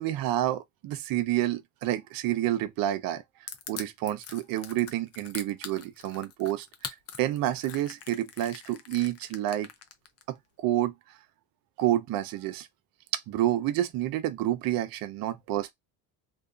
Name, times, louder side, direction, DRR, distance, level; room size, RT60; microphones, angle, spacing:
voice 1, 0.0-3.2 3.7-9.7 10.3-11.2 11.8-12.7 13.3-15.7, right 13 dB, 55° right, 0.6 m, -29 dB
Crushing, 3.5-10.2, left 8 dB, 40° left, 0.5 m, -42 dB
2.6 x 2.2 x 2.4 m
cardioid pair, 105°, 42 cm